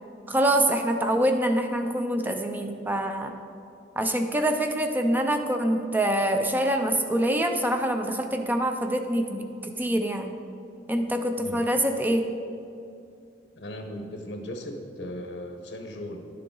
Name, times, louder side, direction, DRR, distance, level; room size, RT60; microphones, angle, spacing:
voice 1, 0.3-3.4 4.0-10.3 10.9-12.2, right 1 dB, 10° right, 5 dB, 0.5 m, -25 dB
voice 2, 13.6-16.3, left 1 dB, 85° left, 4 dB, 1.1 m, -37 dB
11.0 x 6.8 x 3.9 m, 2.6 s
head